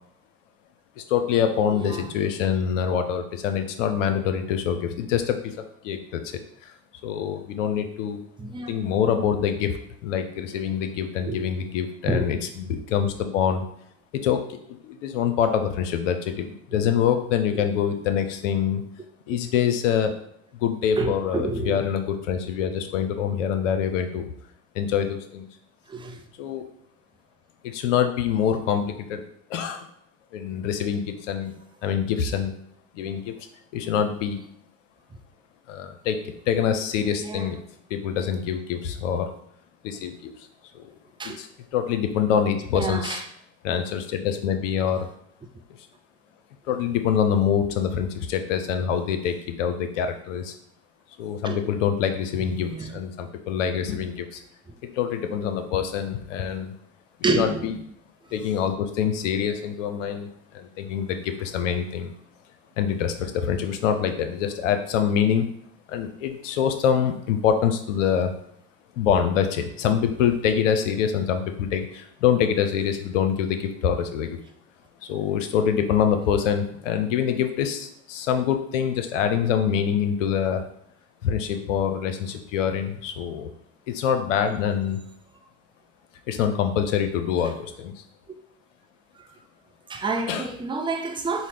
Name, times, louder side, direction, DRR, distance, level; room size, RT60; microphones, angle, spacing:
voice 1, 1.0-6.2 6.6-6.7 7.0-8.2 8.7-9.8 10.0-13.7 14.1-14.6 14.8-18.8 19.3-20.1 20.6-24.3 24.7-25.5 26.4-26.6 27.7-29.2 29.5-29.9 30.3-31.5 31.8-32.5 32.9-33.3 33.7-34.4 35.7-37.6 37.9-39.3 39.8-40.3 40.7-40.9 41.4-41.5 41.7-43.2 43.6-45.1 46.7-50.5 51.2-54.4 54.8-56.7 57.4-57.8 58.3-62.1 62.8-65.5 65.9-68.3 69.0-74.4 75.1-80.6 81.2-83.5 83.9-85.0 86.3-87.9 90.3-90.5, left 8 dB, 80° left, 0.6 m, -25 dB
voice 2, 1.7-2.1 8.4-8.7 11.3-11.5 12.1-12.4 17.5-17.7 21.0-21.9 25.9-26.2 37.2-37.5 41.2-41.4 42.7-43.2 51.4-51.7 52.6-53.0 57.2-57.7 89.2-89.3 89.9-91.5, right 3 dB, 15° right, 0.4 m, -29 dB
4.0 x 2.0 x 3.2 m
hypercardioid pair, 70°, 37 cm